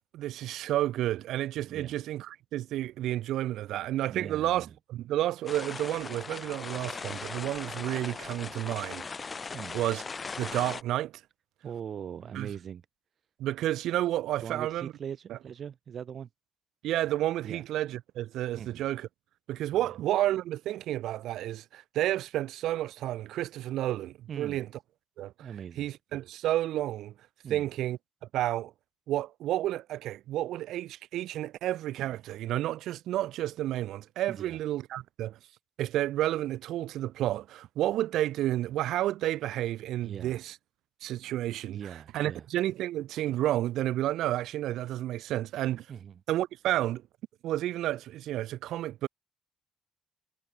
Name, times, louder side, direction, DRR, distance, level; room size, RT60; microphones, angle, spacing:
voice 1, 0.1-9.1 9.7-10.0 10.4-11.1 12.3-12.5 13.4-14.9 15.3-15.4 16.8-19.1 19.5-24.7 25.2-25.3 25.8-27.1 27.5-28.0 28.3-28.7 29.1-35.4 35.8-40.6 41.0-45.9 46.3-47.0 47.4-49.1, right 14 dB, 85° right, 2.2 m, -31 dB
voice 2, 4.1-4.7 9.5-9.8 11.6-12.8 14.4-16.3 17.4-17.6 18.5-18.9 19.7-19.8 24.3-24.7 25.4-25.9 27.4-27.7 34.3-34.6 40.0-40.4 41.6-42.5 45.9-46.2, right 8 dB, 55° right, 2.3 m, -41 dB
sound 1, 5.5-10.8, left 4 dB, 35° left, 2.6 m, -39 dB
cardioid pair, 90°, 0 cm